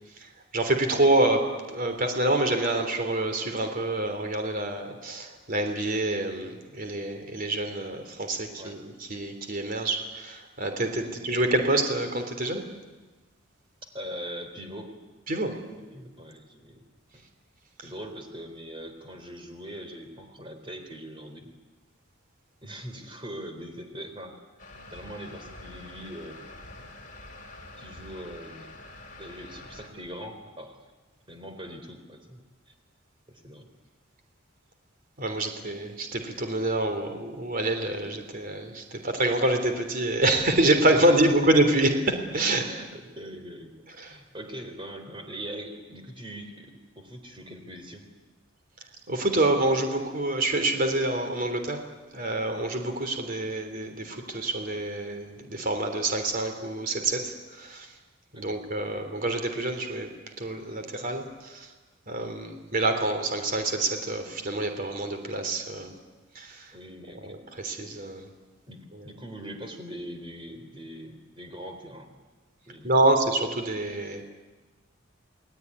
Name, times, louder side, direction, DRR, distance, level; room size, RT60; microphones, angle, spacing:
voice 1, 0.2-12.7 15.3-15.6 35.2-42.7 44.0-44.2 49.1-51.8 52.1-57.9 58.3-60.1 60.4-61.7 62.1-66.0 66.4-66.7 67.3-68.3 68.9-69.1 72.8-74.2, right 2 dB, 45° right, 6 dB, 3.5 m, -27 dB
voice 2, 11.0-11.5 13.9-14.9 15.8-16.8 17.1-17.2 17.8-21.5 22.6-24.4 24.9-26.5 27.8-28.7 29.2-30.8 31.3-32.7 33.3-33.7 41.4-41.5 42.6-43.7 44.0-48.0 58.3-58.6 66.7-67.4 68.7-68.8 69.0-72.1 72.7-72.9, equal, 25° right, 6 dB, 3.8 m, -41 dB
sound 1, 24.6-29.9, left 2 dB, 40° left, 4.1 m, -46 dB
30.0 x 20.0 x 9.8 m, 1.3 s
head